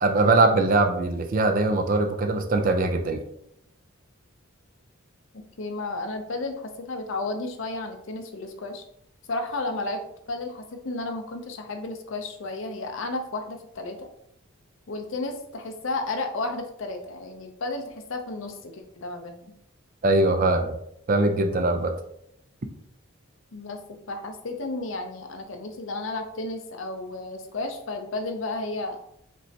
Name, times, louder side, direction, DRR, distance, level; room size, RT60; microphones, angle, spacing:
voice 1, 0.0-3.2 20.0-20.8 21.1-21.9, right 2 dB, 40° right, 5 dB, 0.4 m, -21 dB
voice 2, 5.6-8.8 9.3-10.0 10.3-14.1 14.9-19.4 23.5-23.8 24.1-29.0, left 2 dB, 65° left, 5 dB, 0.6 m, -32 dB
5.2 x 3.3 x 2.8 m, 0.74 s
head